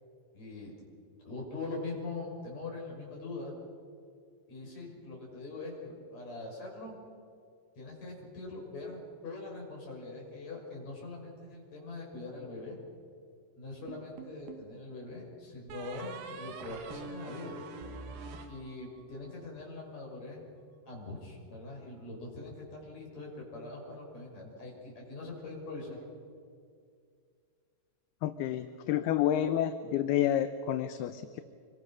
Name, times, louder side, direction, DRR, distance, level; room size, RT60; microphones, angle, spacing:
voice 1, 0.3-0.7 1.2-3.5 4.5-7.0 7.8-12.8 13.6-17.6 18.5-20.5 20.9-26.0, left 3 dB, 40° left, -2 dB, 7.1 m, -42 dB
sound 1, 13.9-14.7 15.7-19.2, right 4 dB, 65° right, 3.3 m, -45 dB
voice 2, 28.2-31.4, left 11 dB, 80° left, 9 dB, 2.7 m, -29 dB
26.0 x 24.0 x 6.2 m, 2.3 s
omnidirectional pair, 4.7 m